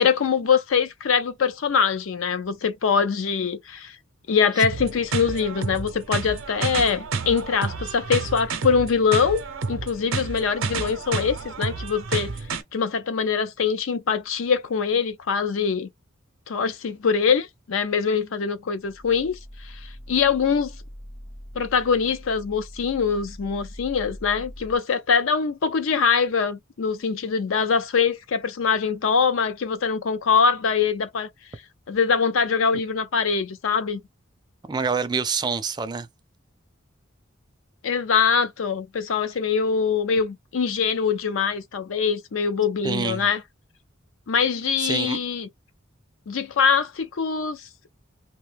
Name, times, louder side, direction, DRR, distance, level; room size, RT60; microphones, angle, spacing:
voice 1, 0.0-4.0 4.3-9.4 9.7-12.3 12.7-15.9 16.5-19.4 19.6-19.8 20.1-20.7 21.5-31.3 31.9-34.0 37.8-43.4 44.3-45.5 46.3-47.6, left 6 dB, 70° left, 0.5 m, -23 dB
sound 1, 4.6-12.6, right 4 dB, 75° right, 0.6 m, -30 dB
sound 2, 18.8-24.8, equal, 30° left, 0.9 m, -42 dB
voice 2, 34.7-36.1 42.8-43.3 44.8-45.2, right 5 dB, 20° right, 0.4 m, -26 dB
2.9 x 2.3 x 3.2 m
head